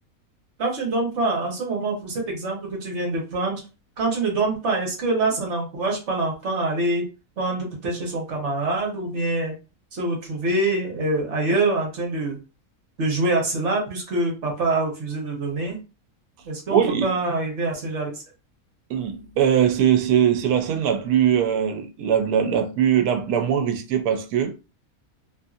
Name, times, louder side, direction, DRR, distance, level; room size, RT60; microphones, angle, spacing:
voice 1, 0.6-3.6 4.0-7.0 7.4-9.5 9.9-12.4 13.0-15.8 16.4-18.2, right 2 dB, 55° right, 1.2 m, -25 dB
voice 2, 16.7-17.1 18.9-24.5, right 9 dB, 85° right, 1.1 m, -21 dB
2.8 x 2.6 x 2.4 m
omnidirectional pair, 1.6 m